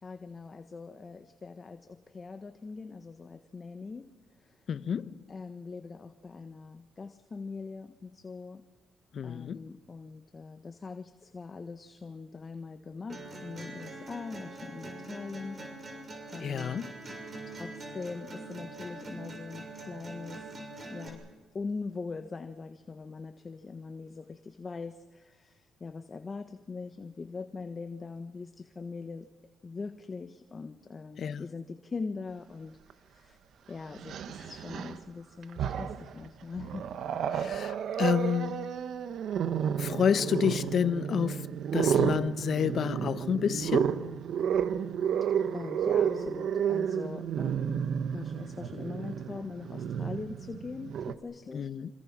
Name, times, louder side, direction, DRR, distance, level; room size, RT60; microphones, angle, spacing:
voice 1, 0.0-4.1 4.4-4.6 5.3-8.6 9.2-15.6 16.3-16.8 17.5-20.6 20.9-21.2 21.5-29.3 29.6-32.8 33.1-33.4 33.7-36.9 45.5-51.7, left 4 dB, 35° left, 1.3 m, -42 dB
voice 2, 4.7-5.1 9.1-9.6 16.4-16.9 31.2-31.5 37.3-38.7 39.8-43.9 51.5-51.9, left 7 dB, 55° left, 0.9 m, -29 dB
sound 1, 13.1-21.1, right 2 dB, 40° right, 6.9 m, -43 dB
Growling, 32.9-33.0 34.0-35.0 35.4-36.1 36.6-51.1, right 8 dB, 70° right, 1.3 m, -31 dB
27.0 x 26.5 x 6.1 m
cardioid pair, 90°, 0 cm